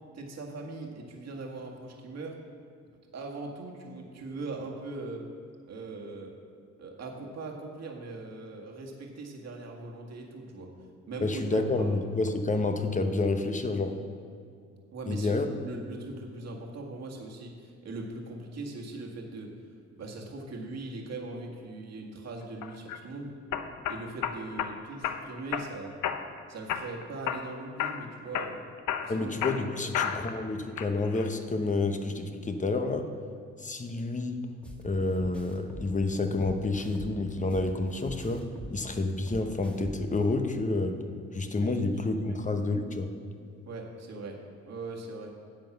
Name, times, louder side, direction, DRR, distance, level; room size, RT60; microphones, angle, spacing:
voice 1, 0.1-2.4 3.1-5.3 5.7-6.3 6.8-10.7 11.1-12.0 14.9-15.3 15.6-19.5 20.0-23.4 23.9-26.0 26.5-28.6 29.0-30.4 41.6-41.8 42.2-42.4 43.7-44.4 44.7-45.3, right 2 dB, 60° right, 0 dB, 1.9 m, -40 dB
voice 2, 11.2-13.9 15.1-15.5 29.1-33.1 33.6-34.4 34.8-38.4 38.7-41.0 41.3-43.1, left 3 dB, 25° left, 7 dB, 1.0 m, -29 dB
sound 1, 22.6-23.0 23.5-24.7 25.0-25.7 26.0-26.4 26.7-27.5 27.8-28.0 28.3-30.4 30.8-31.3, left 9 dB, 80° left, 0.8 m, -32 dB
sound 2, 34.6-34.8 35.2-37.7 38.0-40.2, right 1 dB, 5° left, 1.7 m, -43 dB
10.5 x 7.7 x 6.0 m, 2.3 s
cardioid pair, 90°, 30 cm